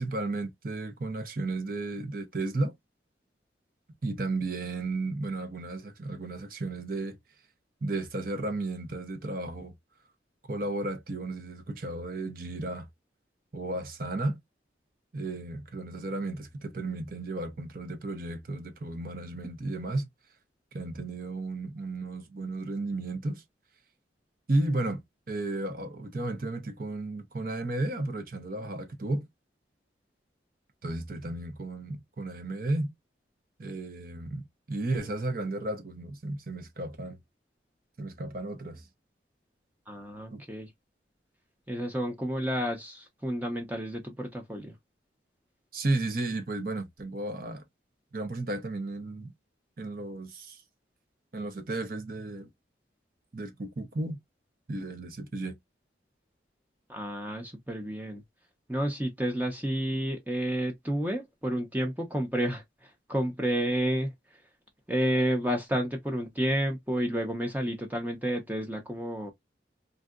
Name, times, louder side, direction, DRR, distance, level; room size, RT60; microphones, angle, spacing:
voice 1, 0.0-2.7 4.0-7.2 7.8-9.7 10.5-12.9 13.5-14.4 15.1-20.1 20.7-23.4 24.5-25.0 25.3-29.3 30.8-32.9 33.6-37.2 38.0-38.9 40.3-40.4 45.7-47.6 48.1-49.3 49.8-50.6 51.3-52.5 53.3-54.2 54.7-55.5, right 2 dB, 50° right, 0.7 m, -33 dB
voice 2, 39.9-40.7 41.7-44.8 56.9-58.2 58.7-64.1 64.9-69.3, equal, 10° right, 0.6 m, -30 dB
3.3 x 2.7 x 2.4 m
head